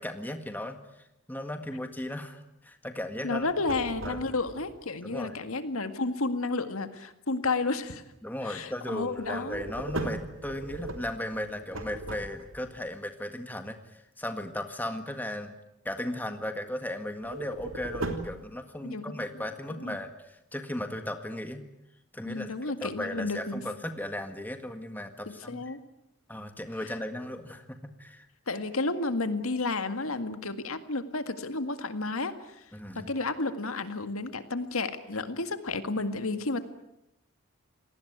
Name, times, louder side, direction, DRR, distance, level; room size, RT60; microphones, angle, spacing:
voice 1, 0.0-3.5 4.0-4.3 5.0-5.4 8.2-15.5 15.8-21.6 22.1-22.5 22.8-25.8 26.3-28.3 32.7-33.1, left 1 dB, 10° left, 7 dB, 1.8 m, -36 dB
voice 2, 3.2-8.0 8.4-9.7 18.8-19.0 19.7-20.0 22.3-23.6 25.3-25.8 26.8-26.9 28.5-32.7 33.0-36.6, left 3 dB, 75° left, 9 dB, 1.9 m, -32 dB
sound 1, 3.4-4.7 9.2-12.7 17.2-18.4, right 2 dB, 65° right, 3.0 m, -37 dB
28.0 x 19.0 x 9.5 m, 0.85 s
head